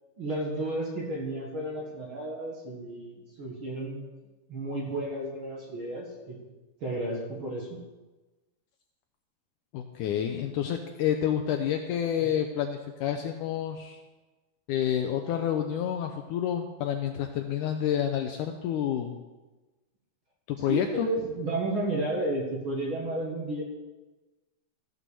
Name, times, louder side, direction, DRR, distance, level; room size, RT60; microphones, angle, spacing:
voice 1, 0.2-4.1 4.5-6.4 6.8-7.8 12.2-12.3 20.7-23.6, right 1 dB, 45° right, -2 dB, 1.9 m, -32 dB
voice 2, 9.7-14.0 14.7-19.2 20.5-21.1, left 10 dB, 80° left, 5 dB, 1.9 m, -29 dB
14.5 x 6.2 x 6.8 m, 1.2 s
omnidirectional pair, 4.2 m